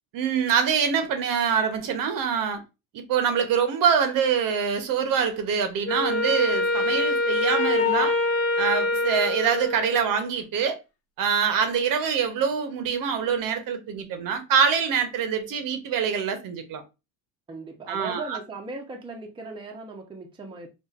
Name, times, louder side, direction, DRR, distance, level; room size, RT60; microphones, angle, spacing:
voice 1, 0.1-2.6 2.9-8.2 8.6-10.8 11.2-16.8 17.9-18.4, right 7 dB, 55° right, 0.9 m, -25 dB
Wind instrument woodwind instrument, 5.9-10.2, left 2 dB, 35° left, 0.8 m, -25 dB
voice 2, 17.5-20.7, right 3 dB, 10° right, 0.7 m, -38 dB
4.2 x 2.5 x 2.4 m
supercardioid pair, 110°, 41 cm